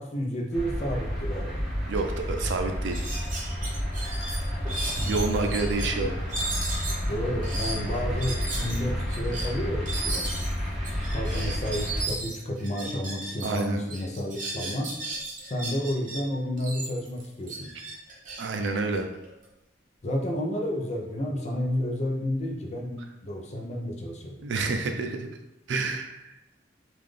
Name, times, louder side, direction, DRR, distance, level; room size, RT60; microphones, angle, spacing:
voice 1, 0.0-1.6 4.9-6.1 7.1-10.3 11.1-14.9 15.4-17.7 20.0-24.4, equal, 35° left, 1 dB, 0.5 m, -31 dB
sound 1, 0.5-12.0, equal, 5° right, 0.7 m, -30 dB
voice 2, 1.9-3.0 5.1-6.1 13.4-13.8 18.4-19.1 24.4-25.3 25.7-26.3, right 3 dB, 70° right, 5 dB, 0.4 m, -28 dB
sound 2, 2.0-2.1 2.4-2.5 2.9-5.9 6.3-13.6 13.9-16.2 16.6-19.5, right 2 dB, 45° right, 0.9 m, -35 dB
3.7 x 2.5 x 3.2 m, 0.88 s
head